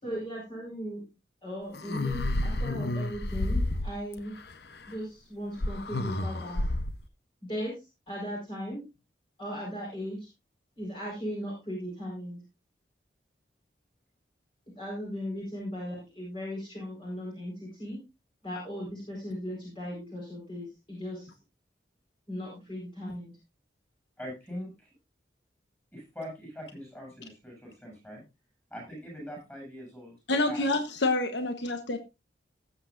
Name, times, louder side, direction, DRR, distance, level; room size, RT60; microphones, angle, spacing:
voice 1, 0.0-1.0 1.4-4.3 4.9-6.6 7.5-8.8 9.4-10.3 10.8-12.4 14.7-18.0 18.4-21.3 22.3-23.3, equal, 30° left, -4 dB, 4.7 m, -37 dB
sound 1, 1.7-4.2 5.6-7.0, left 1 dB, 65° left, 0.8 m, -30 dB
voice 2, 24.2-24.9 25.9-28.2 28.7-30.1 30.4-30.7, equal, 15° left, 0 dB, 7.7 m, -42 dB
voice 3, 30.3-32.0, left 2 dB, 85° left, 7 dB, 1.1 m, -27 dB
19.0 x 8.1 x 2.5 m, 0.26 s
head